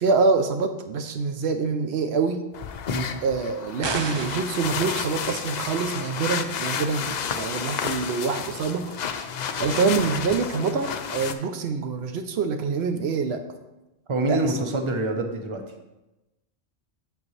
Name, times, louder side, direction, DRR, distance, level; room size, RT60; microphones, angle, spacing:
voice 1, 0.0-2.4 3.2-9.2 9.6-13.4 14.3-14.4, right 4 dB, 75° right, 7 dB, 0.9 m, -25 dB
sound 1, 2.5-11.3, left 7 dB, 55° left, 0.5 m, -31 dB
sound 2, 3.8-4.5, right 4 dB, 50° right, 0.3 m, -30 dB
voice 2, 14.1-15.6, right 2 dB, 30° right, 4 dB, 0.8 m, -26 dB
7.5 x 7.0 x 3.2 m, 0.99 s
omnidirectional pair, 1.1 m